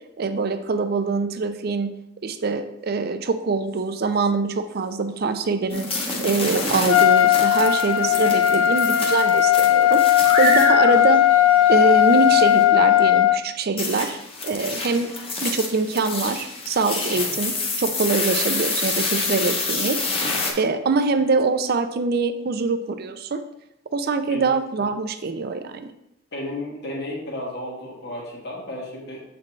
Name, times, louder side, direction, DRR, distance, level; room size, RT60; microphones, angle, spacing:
voice 1, 0.2-1.9 2.2-5.9 6.2-10.0 10.4-11.3 11.7-14.2 14.4-15.1 15.4-20.0 20.6-23.4 23.9-25.9, right 4 dB, 50° right, 9 dB, 0.5 m, -24 dB
sound 1, 5.7-12.6 13.8-20.5, left 3 dB, 30° left, 0.9 m, -28 dB
Trumpet, 6.9-13.4, left 12 dB, 80° left, 0.3 m, -17 dB
voice 2, 26.3-29.2, left 1 dB, 55° left, -2 dB, 1.5 m, -33 dB
7.3 x 4.2 x 3.2 m, 0.83 s
head